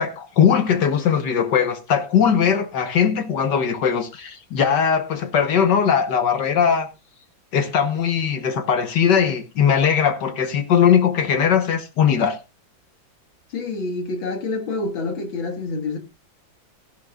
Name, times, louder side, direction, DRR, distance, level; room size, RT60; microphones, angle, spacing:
voice 1, 0.0-6.9 7.5-12.4, left 7 dB, 65° left, 1.6 m, -19 dB
voice 2, 13.5-16.0, left 3 dB, 90° left, 2.6 m, -27 dB
16.0 x 11.0 x 2.3 m
omnidirectional pair, 2.1 m